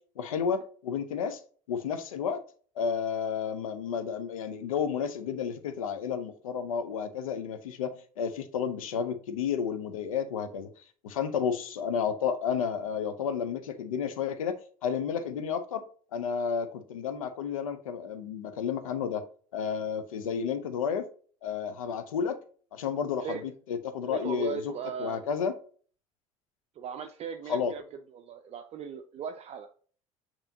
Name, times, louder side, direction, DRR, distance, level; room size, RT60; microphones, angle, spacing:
voice 1, 0.2-1.4 1.7-2.4 2.8-10.7 11.0-15.8 16.1-19.3 19.5-21.1 21.4-22.4 22.7-24.7 25.0-25.6 27.5-27.7, left 7 dB, 75° left, 0.6 m, -31 dB
voice 2, 24.0-25.2 26.8-27.8 28.1-29.7, right 7 dB, 35° right, 0.4 m, -38 dB
6.7 x 2.9 x 2.7 m
figure-of-eight pair, 65°, 18 cm